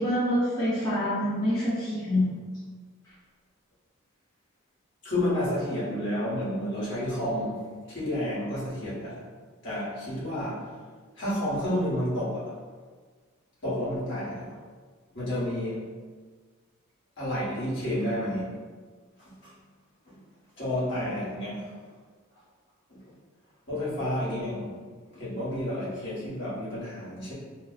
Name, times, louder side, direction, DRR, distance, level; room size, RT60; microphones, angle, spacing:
voice 1, 0.0-2.2, equal, 15° left, -12 dB, 0.8 m, -26 dB
voice 2, 5.0-7.6 7.9-9.2 9.6-10.6 11.2-12.5 13.6-14.5 15.1-15.8 17.2-18.5 19.2-19.5 20.0-20.2 20.6-21.8 22.9-23.0 23.7-24.8 25.1-27.3, left 1 dB, 60° left, -10 dB, 1.4 m, -30 dB
2.7 x 2.3 x 3.9 m, 1.5 s
head